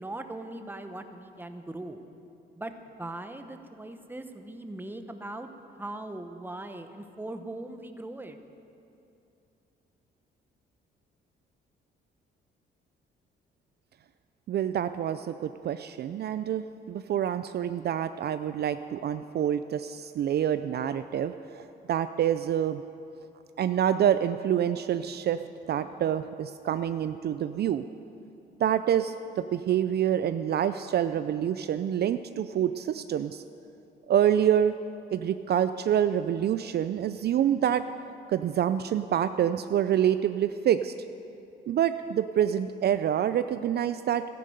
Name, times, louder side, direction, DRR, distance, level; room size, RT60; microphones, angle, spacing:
voice 1, 0.0-2.0 2.6-2.7 3.0-5.5 5.8-8.4, right 2 dB, 10° right, 7 dB, 1.0 m, -39 dB
voice 2, 14.5-22.8 23.6-25.4 25.7-27.8 28.6-33.4 34.1-34.8 35.1-37.8 38.3-40.9 41.7-44.3, right 10 dB, 55° right, 11 dB, 0.4 m, -27 dB
13.0 x 10.5 x 7.8 m, 2.7 s
cardioid pair, 90°, 20 cm